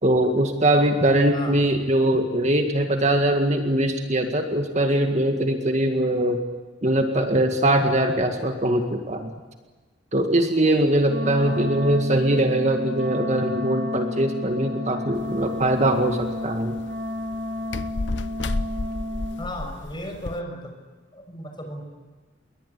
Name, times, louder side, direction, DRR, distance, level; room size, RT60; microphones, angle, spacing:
voice 1, 0.0-6.4 6.8-9.3 10.1-16.8, right 1 dB, 35° right, 5 dB, 2.0 m, -21 dB
Wind instrument woodwind instrument, 11.0-19.5, left 1 dB, 60° right, 3.0 m, -31 dB
voice 2, 11.3-11.7 19.4-20.7 21.1-21.8, equal, 25° left, 4 dB, 6.2 m, -35 dB
sound 1, 15.2-20.4, left 2 dB, 70° left, 0.9 m, -33 dB
28.5 x 22.0 x 8.5 m, 1.3 s
head